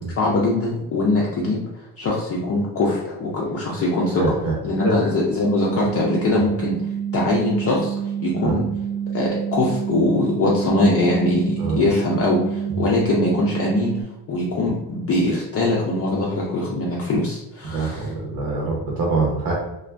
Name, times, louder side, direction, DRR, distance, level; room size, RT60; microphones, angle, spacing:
voice 1, 0.2-1.6 2.0-4.4 4.6-6.8 7.1-7.9 8.2-8.6 9.1-13.9 14.3-18.1, left 2 dB, 35° left, -4 dB, 0.4 m, -22 dB
voice 2, 4.2-4.5 4.8-5.0 8.4-8.6 11.6-11.8 12.8-12.9 17.7-19.5, right 3 dB, 55° right, -2 dB, 0.7 m, -24 dB
sound 1, 5.4-14.0, right 8 dB, 15° right, 0.7 m, -27 dB
2.5 x 2.2 x 3.2 m, 0.95 s
cardioid pair, 180°, 41 cm